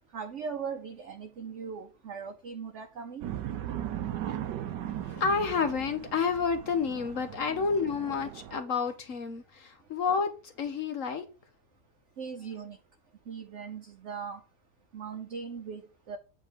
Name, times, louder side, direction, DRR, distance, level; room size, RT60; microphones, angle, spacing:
voice 1, 0.1-3.3 12.2-12.8 13.3-14.4 14.9-16.2, right 6 dB, 55° right, 1.0 m, -39 dB
sound 1, 3.2-8.6, right 11 dB, 85° right, 1.4 m, -38 dB
voice 2, 4.9-11.3 12.4-12.5, left 5 dB, 55° left, 1.2 m, -30 dB
8.4 x 3.8 x 6.7 m
omnidirectional pair, 1.8 m